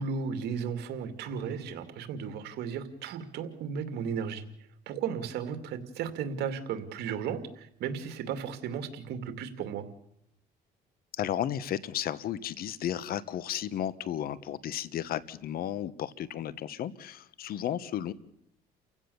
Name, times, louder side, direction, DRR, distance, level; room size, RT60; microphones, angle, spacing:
voice 1, 0.0-4.5 4.9-9.9, right 6 dB, 75° right, 9 dB, 2.5 m, -35 dB
voice 2, 11.1-18.1, left 10 dB, 60° left, 17 dB, 1.2 m, -33 dB
30.0 x 16.0 x 7.1 m, 0.74 s
cardioid pair, 110°, 17 cm